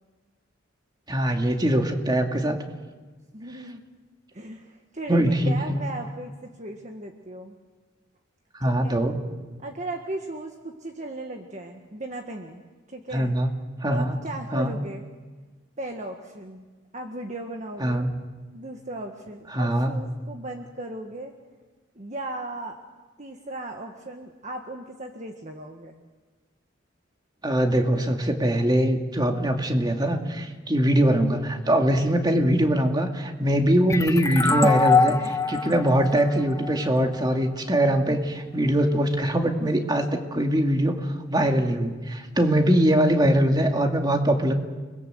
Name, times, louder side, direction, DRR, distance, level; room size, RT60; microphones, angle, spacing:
voice 1, 1.1-2.6 5.1-5.6 8.6-9.2 13.1-13.5 13.8-14.2 14.5-14.7 17.8-18.1 19.5-19.9 27.4-44.5, right 1 dB, 20° right, 3 dB, 2.4 m, -22 dB
voice 2, 3.3-3.8 4.3-7.5 8.6-9.0 9.6-12.6 12.9-13.4 13.9-15.0 15.8-16.6 16.9-18.1 18.5-21.3 21.9-22.8 23.2-26.0 33.4-33.6, right 2 dB, 40° right, 3 dB, 1.6 m, -36 dB
sound 1, 33.9-37.3, left 4 dB, 15° left, 0.8 m, -24 dB
30.0 x 22.0 x 7.8 m, 1.3 s
head